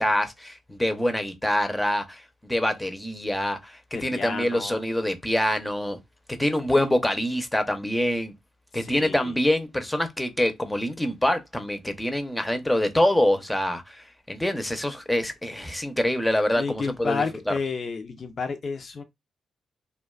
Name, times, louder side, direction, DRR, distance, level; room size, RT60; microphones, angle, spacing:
voice 1, 0.0-6.0 6.3-8.3 8.7-17.5, left 1 dB, 10° left, 0.6 m, -25 dB
voice 2, 3.9-4.8 8.7-9.3 16.5-19.0, left 5 dB, 50° left, 0.5 m, -31 dB
2.4 x 2.2 x 2.3 m
supercardioid pair, 55°, 0 cm